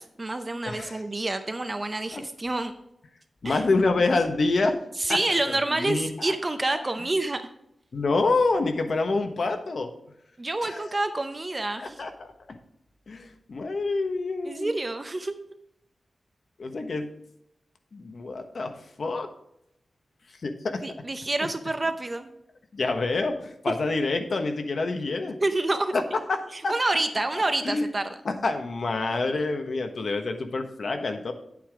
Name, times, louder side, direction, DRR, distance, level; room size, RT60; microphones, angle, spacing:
voice 1, 0.0-2.7 3.4-3.6 5.0-7.5 10.4-12.0 14.5-15.3 20.8-22.3 25.4-25.9 26.5-28.1, right 2 dB, 25° right, 8 dB, 0.6 m, -28 dB
voice 2, 0.6-1.0 2.1-2.2 3.4-4.8 5.1-5.2 5.5-6.3 7.9-9.9 10.6-10.8 11.8-12.6 13.1-14.7 16.6-17.1 17.9-18.7 19.0-19.3 20.4-20.8 22.7-25.4 25.9-26.0 26.3-26.7 27.6-27.9 28.2-31.3, left 3 dB, 60° left, 5 dB, 1.2 m, -27 dB
9.5 x 8.4 x 3.6 m, 0.78 s
wide cardioid pair, 150°, 0 cm